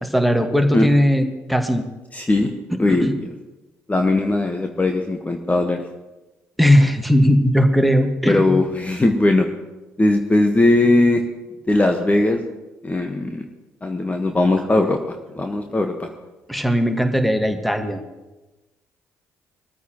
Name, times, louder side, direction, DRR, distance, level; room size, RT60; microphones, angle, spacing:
voice 1, 0.0-1.9 2.7-3.1 6.6-8.6 16.5-18.0, equal, ahead, 6 dB, 1.8 m, -18 dB
voice 2, 2.1-2.5 2.8-3.1 3.9-5.8 8.2-9.5 10.0-11.2 11.7-12.4 12.8-13.4 13.8-15.0 15.4-16.1, left 2 dB, 20° left, 4 dB, 1.4 m, -19 dB
21.5 x 14.0 x 3.1 m, 1.1 s
figure-of-eight pair, 45°, 8 cm